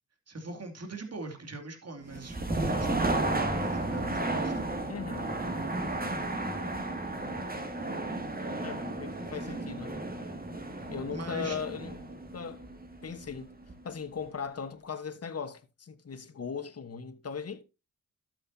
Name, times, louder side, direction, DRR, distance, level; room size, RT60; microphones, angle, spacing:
voice 1, 0.3-4.6 11.1-11.6, right 2 dB, 50° right, 2.7 m, -42 dB
sound 1, 2.1-13.9, right 2 dB, 25° right, 2.3 m, -33 dB
voice 2, 4.9-5.7 8.6-10.0 10.9-12.0 12.3-12.6 13.0-13.5 13.8-17.6, left 6 dB, 45° left, 1.3 m, -38 dB
12.5 x 7.6 x 2.7 m
supercardioid pair, 45°, 33 cm